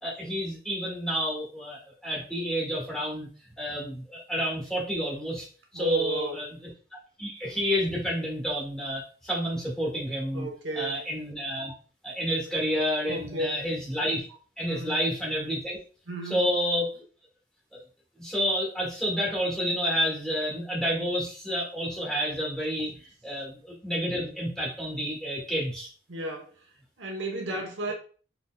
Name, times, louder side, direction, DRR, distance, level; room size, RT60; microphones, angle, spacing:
voice 1, 0.0-3.3 3.6-5.5 5.7-6.7 7.2-10.5 10.7-11.7 12.0-14.3 14.6-15.8 16.3-16.9 18.2-22.9 23.2-25.9, equal, 5° left, -3 dB, 1.3 m, -29 dB
voice 2, 5.7-6.4 10.3-11.0 13.0-13.7 14.7-15.0 16.1-16.5 26.1-26.6 27.0-27.9, right 1 dB, 90° right, 1 dB, 1.1 m, -33 dB
4.1 x 3.4 x 2.3 m, 0.40 s
head